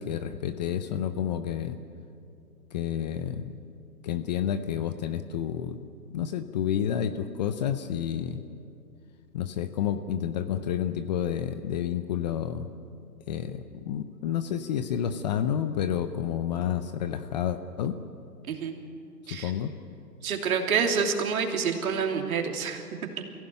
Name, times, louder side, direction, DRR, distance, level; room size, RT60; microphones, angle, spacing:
voice 1, 0.0-1.8 2.7-3.4 4.0-5.9 6.1-8.4 9.3-12.7 13.3-18.0 19.4-19.7, left 9 dB, 25° left, 10 dB, 0.7 m, -30 dB
voice 2, 20.2-22.8, right 6 dB, 55° right, 3 dB, 3.1 m, -27 dB
24.5 x 16.0 x 9.2 m, 2.6 s
hypercardioid pair, 140°, 49 cm